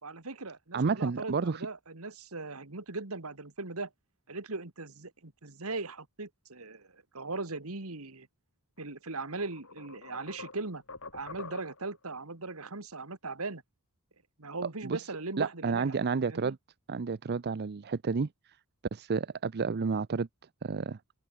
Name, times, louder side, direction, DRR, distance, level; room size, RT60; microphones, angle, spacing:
voice 1, 0.0-3.9 4.3-8.3 8.8-10.8 11.1-13.6 14.4-15.9 16.3-16.6, right 3 dB, 70° right, 2.2 m, -39 dB
voice 2, 0.7-1.6 14.8-15.0 15.4-16.6 16.9-18.3 18.9-20.3 20.6-21.0, right 5 dB, 45° right, 0.5 m, -30 dB
sound 1, 8.8-8.9 9.4-12.0, left 3 dB, 65° left, 6.1 m, -46 dB
open air
head